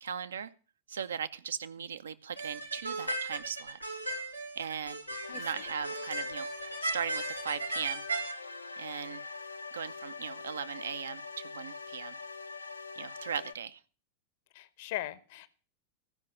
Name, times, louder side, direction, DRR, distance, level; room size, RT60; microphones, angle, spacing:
voice 1, 0.0-0.5 0.9-3.8 4.6-5.0 5.3-6.5 6.8-8.0 8.8-9.3 9.7-12.2 13.0-13.8, right 7 dB, 65° right, 0.7 m, -38 dB
sound 1, 2.4-8.3, right 2 dB, 85° right, 1.7 m, -37 dB
sound 2, 5.2-13.5, left 4 dB, 80° left, 0.7 m, -43 dB
voice 2, 14.5-15.5, left 15 dB, 50° left, 0.9 m, -39 dB
14.0 x 5.6 x 7.7 m
figure-of-eight pair, 90°, 0 cm